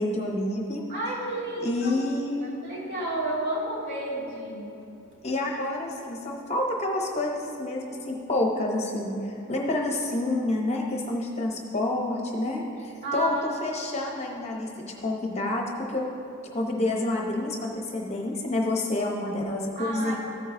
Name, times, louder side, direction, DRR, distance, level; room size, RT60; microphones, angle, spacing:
voice 1, 0.0-0.8 1.6-2.5 5.2-13.3 13.6-16.1 16.5-20.1, left 2 dB, 30° left, 0 dB, 0.8 m, -28 dB
voice 2, 0.9-4.9 13.0-13.5 19.8-20.1, right 1 dB, 50° right, -5 dB, 2.2 m, -32 dB
14.0 x 9.1 x 2.6 m, 2.9 s
head